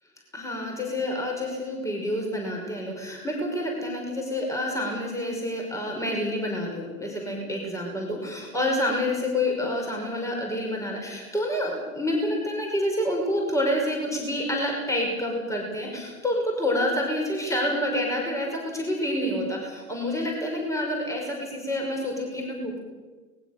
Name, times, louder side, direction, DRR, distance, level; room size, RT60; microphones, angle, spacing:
voice 1, 0.3-22.8, left 1 dB, 5° left, 0 dB, 5.7 m, -28 dB
23.0 x 20.5 x 6.8 m, 1.3 s
figure-of-eight pair, 95°, 44 cm